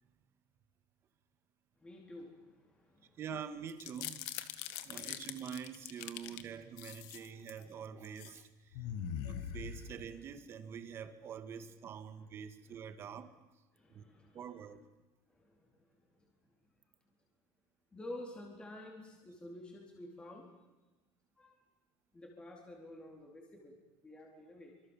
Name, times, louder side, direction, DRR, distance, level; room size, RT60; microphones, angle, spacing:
voice 1, 1.8-3.2 4.6-5.0 7.1-7.3 8.8-9.7 12.2-12.4 12.6-12.8 13.0-13.2 13.7-14.5 15.3-16.5 17.1-17.2 17.9-20.5 21.4-21.6 22.1-24.8, left 1 dB, 10° left, 0 dB, 4.2 m, -52 dB
voice 2, 3.2-4.3 4.8-8.9 9.2-13.3 13.9-14.0 14.3-14.8, right 7 dB, 30° right, 9 dB, 2.1 m, -46 dB
sound 1, 3.7-6.4 6.8-7.6 8.0-8.4 8.7-10.3, left 10 dB, 65° left, 1.9 m, -43 dB
26.5 x 26.0 x 7.4 m, 1.2 s
cardioid pair, 170°, 8 cm